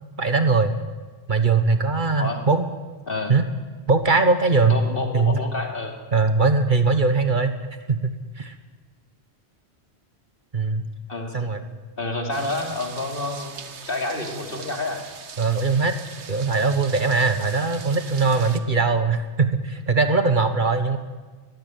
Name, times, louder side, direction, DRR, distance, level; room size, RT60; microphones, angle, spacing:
voice 1, 0.2-0.7 1.3-2.6 3.3-3.4 3.9-4.8 5.1-5.4 6.1-7.6 7.9-8.5 10.5-10.8 11.3-11.6 15.4-15.9 16.3-21.0, right 4 dB, 45° right, 9 dB, 1.4 m, -20 dB
voice 2, 4.7-6.0 11.1-11.5 12.0-15.0, left 2 dB, 55° left, 3 dB, 3.2 m, -29 dB
sound 1, 12.3-18.6, right 6 dB, 80° right, 1.5 m, -41 dB
20.5 x 15.0 x 9.3 m, 1.3 s
omnidirectional pair, 1.1 m